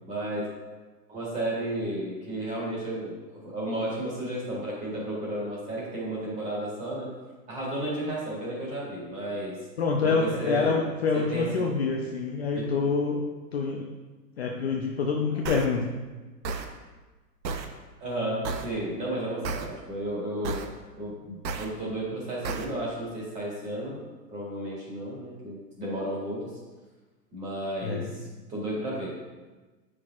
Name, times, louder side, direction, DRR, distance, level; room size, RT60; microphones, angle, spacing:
voice 1, 0.1-0.4 1.1-7.1 7.5-9.6 10.0-10.8 11.1-11.6 12.0-12.1 12.5-12.7 18.0-20.6 21.0-24.0 24.3-26.5 27.3-29.1, right 1 dB, 15° right, -6 dB, 1.8 m, -33 dB
voice 2, 9.8-13.2 13.5-13.9 14.4-15.9 27.8-28.1, left 4 dB, 40° left, 0 dB, 0.6 m, -26 dB
sound 1, 15.5-15.7 16.4-16.7 17.4-17.7 18.4-18.7 19.4-19.7 20.5-20.7 21.5-21.7 22.5-22.7, right 4 dB, 85° right, 1.0 m, -31 dB
7.9 x 6.1 x 2.4 m, 1.2 s
hypercardioid pair, 160°, 50 cm